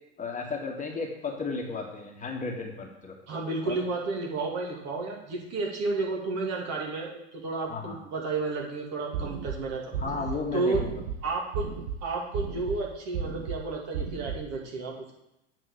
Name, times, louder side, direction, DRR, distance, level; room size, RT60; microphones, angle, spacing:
voice 1, 0.2-3.2 3.6-3.8 7.7-8.0 9.9-11.0, left 4 dB, 20° left, 0 dB, 1.8 m, -34 dB
voice 2, 3.3-9.9 10.5-10.8 11.2-11.7 12.0-15.1, right 3 dB, 45° right, -2 dB, 2.6 m, -31 dB
sound 1, 9.1-9.6 9.9-10.4 10.7-11.2 11.5-12.0 12.3-12.8 13.1-13.6 13.9-14.4, right 7 dB, 70° right, 1.3 m, -33 dB
8.8 x 4.4 x 6.5 m, 0.89 s
figure-of-eight pair, 80°, 36 cm